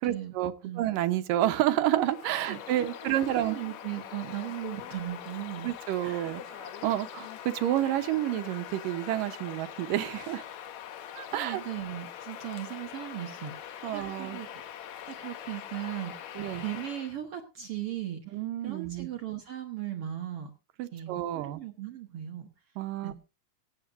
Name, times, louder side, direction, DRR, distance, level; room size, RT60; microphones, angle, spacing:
voice 1, 0.0-3.6 5.6-10.4 11.1-11.6 13.8-14.4 16.4-16.6 18.3-19.1 20.8-21.6 22.8-23.1, right 13 dB, 75° right, 10 dB, 2.5 m, -29 dB
Bird vocalization bird call bird song, 1.9-17.2, left 10 dB, 65° left, 2.0 m, -43 dB
voice 2, 2.5-5.7 6.0-6.4 11.3-14.6 15.1-18.2 18.6-20.5 20.9-22.5 23.0-23.1, right 12 dB, 55° right, 3 dB, 1.8 m, -38 dB
23.5 x 9.1 x 2.6 m, 0.30 s
omnidirectional pair, 4.0 m